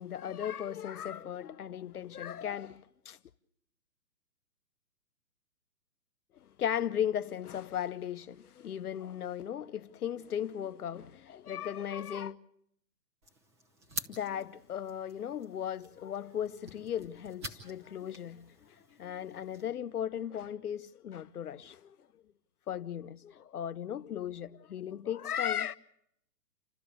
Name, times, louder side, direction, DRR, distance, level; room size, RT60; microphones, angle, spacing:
voice 1, 0.0-3.2 6.3-12.4 14.1-22.1 22.7-25.8, left 9 dB, 65° left, 0.8 m, -37 dB
sound 1, 13.2-19.6, right 1 dB, 15° right, 1.0 m, -47 dB
28.5 x 13.0 x 8.4 m
hypercardioid pair, 170°, 49 cm